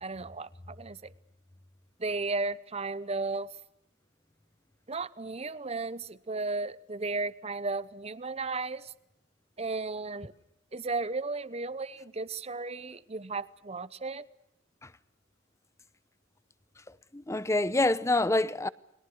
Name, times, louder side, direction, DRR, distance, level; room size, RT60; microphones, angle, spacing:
voice 1, 0.0-1.0 2.0-3.5 4.9-8.9 9.6-10.3 10.7-14.2, right 3 dB, 30° right, 0.9 m, -34 dB
voice 2, 16.9-18.7, left 2 dB, 15° left, 0.8 m, -27 dB
30.0 x 21.5 x 6.4 m
head